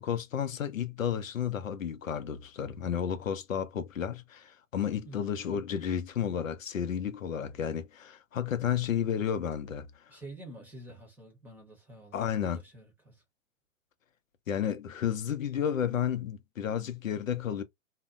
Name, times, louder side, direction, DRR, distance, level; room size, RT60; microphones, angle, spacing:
voice 1, 0.0-9.9 12.1-12.6 14.5-17.6, left 8 dB, 80° left, 0.7 m, -32 dB
voice 2, 5.0-5.4 10.1-13.2, right 1 dB, 5° right, 0.8 m, -48 dB
2.7 x 2.1 x 2.3 m
hypercardioid pair, 120°, 40 cm